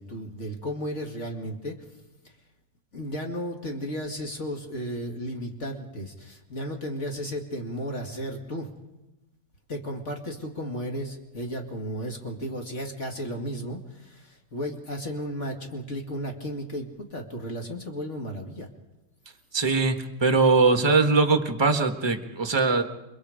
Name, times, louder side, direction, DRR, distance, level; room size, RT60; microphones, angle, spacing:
voice 1, 0.0-1.8 2.9-8.7 9.7-18.7, equal, 40° left, 2 dB, 2.6 m, -34 dB
voice 2, 19.5-22.8, right 3 dB, 15° right, 6 dB, 1.3 m, -21 dB
29.0 x 23.5 x 5.1 m, 1.0 s
omnidirectional pair, 1.9 m